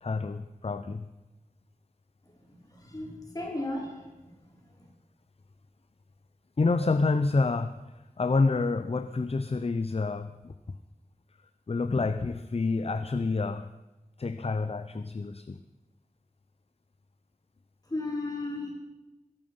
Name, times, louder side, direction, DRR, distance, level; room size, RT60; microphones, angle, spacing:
voice 1, 0.0-1.1 6.6-7.7 8.2-10.5 11.7-13.7 14.2-15.6, left 3 dB, 45° left, 10 dB, 0.6 m, -28 dB
voice 2, 2.5-4.3 4.7-4.8 17.9-18.7, left 2 dB, 25° left, -2 dB, 4.9 m, -35 dB
21.5 x 10.5 x 5.5 m, 1.0 s
wide cardioid pair, 75°, 14 cm